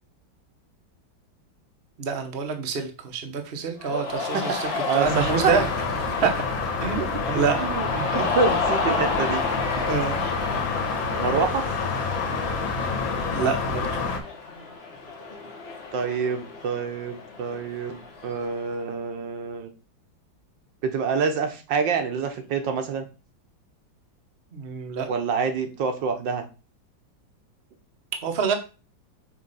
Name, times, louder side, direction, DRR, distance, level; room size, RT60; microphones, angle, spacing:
voice 1, 2.0-5.7 6.1-6.3 6.8-7.6 8.1-8.3 9.9-10.2 13.3-13.8 24.5-25.1 28.2-28.5, right 5 dB, 40° right, 4 dB, 1.0 m, -26 dB
Cheering, 3.8-18.6, left 4 dB, 35° left, 1.3 m, -32 dB
voice 2, 4.6-5.5 6.2-6.3 7.3-8.1 8.3-9.4 11.2-11.6 15.9-19.7 20.8-23.0 25.1-26.4, right 5 dB, 70° right, 6 dB, 1.6 m, -27 dB
sound 1, 5.0-14.2, left 4 dB, 80° left, 2.0 m, -28 dB
6.3 x 3.3 x 5.4 m, 0.32 s
omnidirectional pair, 2.1 m